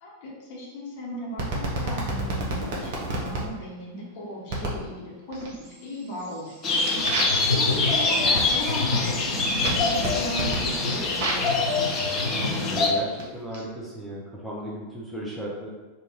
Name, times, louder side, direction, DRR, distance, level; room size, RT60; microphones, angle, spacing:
voice 1, 0.0-11.4, equal, 45° left, -6 dB, 1.2 m, -37 dB
sound 1, 1.4-3.4 4.5-4.8 5.3-5.8 6.2-11.6 12.4-13.6, right 2 dB, 50° right, 0.8 m, -32 dB
sound 2, 6.6-12.9, left 3 dB, 30° left, 0.6 m, -25 dB
sound 3, 7.0-13.1, left 3 dB, 90° left, 0.4 m, -31 dB
voice 2, 12.0-15.7, right 1 dB, 5° right, -5 dB, 0.7 m, -36 dB
2.9 x 2.5 x 3.9 m, 1.2 s
figure-of-eight pair, 90°, 0 cm